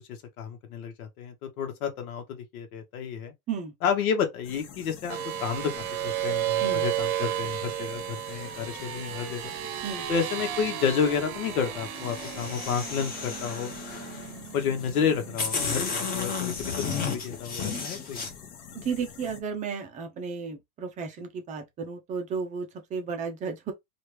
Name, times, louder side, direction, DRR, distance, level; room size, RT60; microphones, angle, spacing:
voice 1, 0.0-3.3 3.8-5.7 6.0-9.5 10.1-13.7 14.5-18.2, left 7 dB, 85° left, 1.1 m, -30 dB
sound 1, 4.4-19.4, left 7 dB, 50° left, 1.0 m, -46 dB
sound 2, 5.1-15.9, right 12 dB, 85° right, 0.8 m, -33 dB
sound 3, 11.9-14.3 15.0-15.1 15.4-18.3, left 5 dB, 20° left, 0.8 m, -33 dB
voice 2, 18.7-23.7, right 5 dB, 20° right, 0.5 m, -33 dB
3.1 x 2.5 x 3.1 m
supercardioid pair, 145°, 43 cm